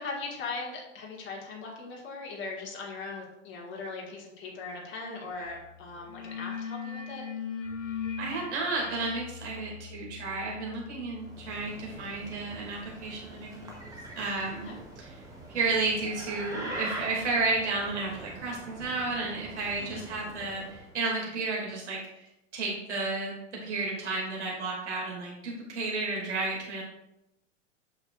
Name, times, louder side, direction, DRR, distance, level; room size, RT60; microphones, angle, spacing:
voice 1, 0.0-7.2 9.6-9.7 14.6-14.8 19.8-20.2, left 3 dB, 30° left, -1 dB, 2.0 m, -39 dB
sound 1, 5.4-5.6 5.9-12.5, left 6 dB, 70° left, 1.4 m, -40 dB
voice 2, 8.2-15.1 15.5-22.2 22.5-23.3 23.6-26.8, right 3 dB, 60° right, -2 dB, 2.8 m, -32 dB
sound 2, 11.2-20.9, right 1 dB, 10° right, 1.7 m, -43 dB
8.5 x 6.3 x 2.6 m, 0.86 s
figure-of-eight pair, 90°, 38 cm